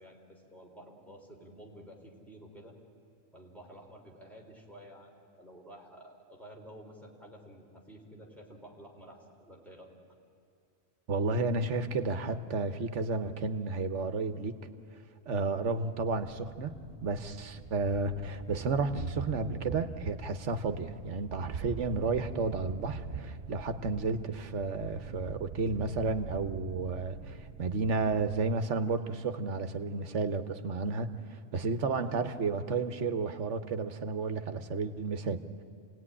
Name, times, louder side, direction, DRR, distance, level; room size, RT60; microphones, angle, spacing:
voice 1, 0.0-2.8 3.3-9.9, equal, ahead, -2 dB, 3.8 m, -51 dB
voice 2, 11.1-14.7 15.3-16.7 17.0-35.4, right 4 dB, 80° right, 10 dB, 1.4 m, -32 dB
Thunder, 16.2-28.7, right 5 dB, 60° right, 1.2 m, -43 dB
27.0 x 18.5 x 9.9 m, 2.5 s
omnidirectional pair, 1.2 m